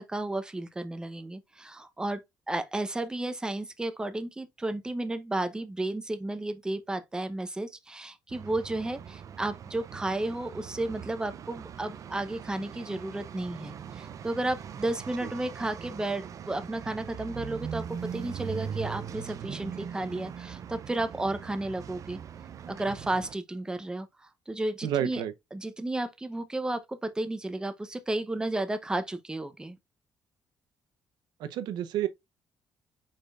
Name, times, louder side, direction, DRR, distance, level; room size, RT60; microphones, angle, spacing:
voice 1, 0.0-2.2 2.5-22.2 22.7-25.2 25.5-29.8, right 2 dB, 10° right, 0.7 m, -33 dB
sound 1, 8.3-23.3, right 8 dB, 50° right, 0.4 m, -41 dB
voice 2, 24.8-25.3 31.4-32.1, right 11 dB, 90° right, 0.7 m, -29 dB
5.0 x 4.3 x 2.4 m
cardioid pair, 110°, 7 cm